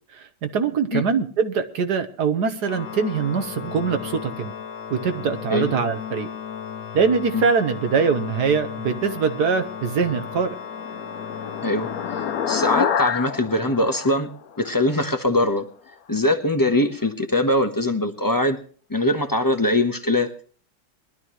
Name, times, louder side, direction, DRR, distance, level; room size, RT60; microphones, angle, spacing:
voice 1, 0.1-4.5 4.9-6.3 6.9-10.5, right 5 dB, 75° right, 8 dB, 1.8 m, -23 dB
Organ, 2.6-13.5, left 7 dB, 85° left, 1.7 m, -35 dB
sound 1, 10.3-15.1, left 8 dB, 65° left, 1.2 m, -28 dB
voice 2, 12.5-14.3 14.6-15.6 16.1-18.6 18.9-20.3, left 1 dB, 15° left, 7 dB, 1.0 m, -22 dB
21.5 x 12.0 x 3.1 m, 0.42 s
omnidirectional pair, 1.8 m